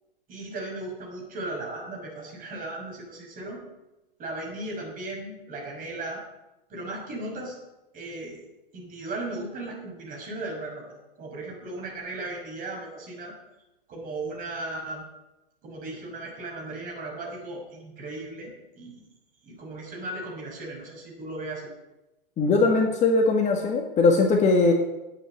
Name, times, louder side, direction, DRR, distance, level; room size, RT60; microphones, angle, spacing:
voice 1, 0.3-3.6 4.2-6.2 6.7-7.6 7.9-8.4 8.7-13.3 13.9-15.0 15.6-19.0 19.4-21.7, right 2 dB, 30° right, -1 dB, 5.8 m, -36 dB
voice 2, 22.4-24.7, left 3 dB, 25° left, 2 dB, 1.9 m, -20 dB
11.0 x 8.9 x 8.5 m, 0.98 s
hypercardioid pair, 110°, 29 cm